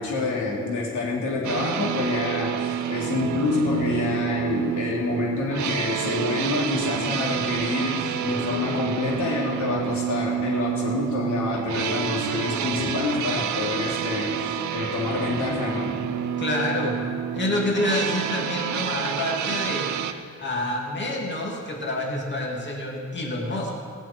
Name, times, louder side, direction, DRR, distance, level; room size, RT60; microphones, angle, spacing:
voice 1, 0.0-14.4 14.7-16.0, left 3 dB, 85° left, -3 dB, 3.4 m, -27 dB
sound 1, 1.4-20.1, right 9 dB, 80° right, 0.8 m, -28 dB
voice 2, 16.4-17.0 17.3-19.9 20.4-23.7, left 1 dB, 40° left, -1 dB, 2.7 m, -27 dB
17.0 x 6.6 x 9.3 m, 2.2 s
cardioid pair, 120°, 29 cm